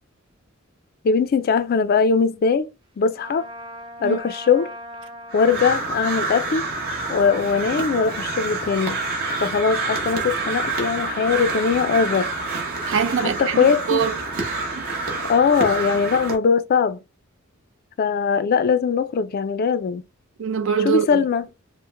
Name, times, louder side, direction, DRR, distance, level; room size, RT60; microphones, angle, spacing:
voice 1, 1.0-2.7 3.0-3.5 4.0-4.7 5.3-6.6 7.1-9.0 9.4-12.3 13.2-14.0 15.3-17.0 18.0-20.0 20.9-21.4, left 5 dB, 45° left, 0.3 m, -20 dB
Trumpet, 3.2-5.7, equal, 25° right, 0.7 m, -39 dB
Crow, 5.3-16.4, right 3 dB, 50° right, 0.9 m, -27 dB
voice 2, 12.9-14.8 20.4-21.2, right 7 dB, 65° right, 0.5 m, -24 dB
3.0 x 2.0 x 3.3 m
head